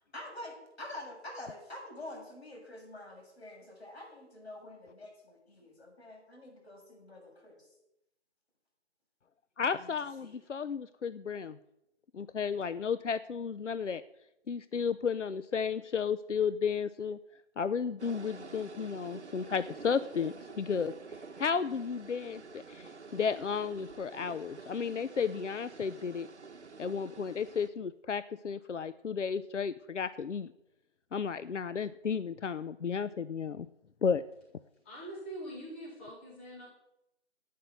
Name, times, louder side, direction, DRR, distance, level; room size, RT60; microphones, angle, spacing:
voice 1, 0.1-7.6 9.8-9.9 10.2-10.3, left 1 dB, 60° left, 1 dB, 6.9 m, -47 dB
voice 2, 9.6-11.6 12.1-14.0 14.5-17.2 17.6-20.9 21.4-26.3 26.8-30.5 31.1-33.7 34.0-34.2, left 6 dB, 90° left, 15 dB, 0.7 m, -33 dB
sound 1, 18.0-27.7, right 4 dB, 70° right, 1.4 m, -48 dB
voice 3, 34.8-36.7, right 1 dB, 10° left, -5 dB, 2.0 m, -43 dB
12.0 x 8.6 x 9.4 m, 0.86 s
figure-of-eight pair, 170°, 35 cm